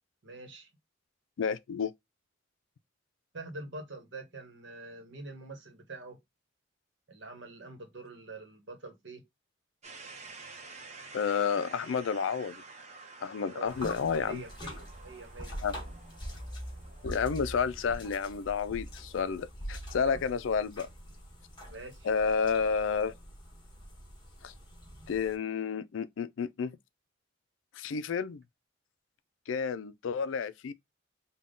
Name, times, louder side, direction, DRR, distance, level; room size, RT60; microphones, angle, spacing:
voice 1, 0.2-0.7 3.3-6.2 7.1-9.2 13.5-13.7 14.3-15.6 20.0-20.2 21.7-22.1, right 2 dB, 65° right, 1.1 m, -45 dB
voice 2, 1.4-1.9 11.1-12.6 13.2-14.4 15.6-15.8 17.0-20.9 22.0-23.1 24.4-24.5 25.1-26.8 27.8-28.4 29.5-30.7, left 6 dB, 80° left, 0.4 m, -30 dB
sound 1, 9.8-19.7, right 3 dB, 35° right, 0.8 m, -51 dB
sound 2, 13.7-25.4, equal, 25° left, 1.3 m, -44 dB
3.6 x 2.2 x 3.7 m
head